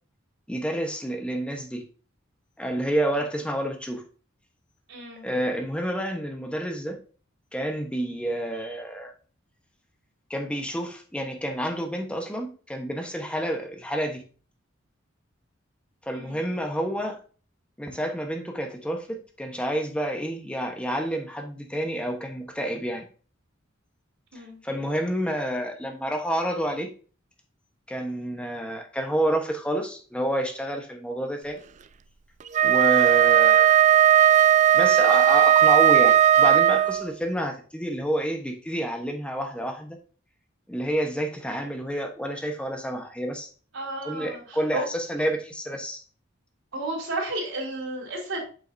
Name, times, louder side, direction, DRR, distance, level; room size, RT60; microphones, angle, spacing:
voice 1, 0.5-1.8 2.6-4.0 5.2-7.0 7.5-9.1 10.3-14.2 16.1-17.2 17.8-23.0 24.6-26.9 27.9-31.6 32.6-33.8 34.7-40.0 40.7-43.5 44.0-46.0, right 1 dB, 5° left, 3 dB, 1.2 m, -29 dB
voice 2, 4.9-5.2 16.1-16.4 24.3-24.6 43.7-44.9 46.7-48.4, right 2 dB, 75° right, -4 dB, 3.5 m, -32 dB
Wind instrument woodwind instrument, 32.5-37.1, right 10 dB, 35° right, 0.4 m, -17 dB
7.7 x 5.6 x 2.7 m, 0.39 s
head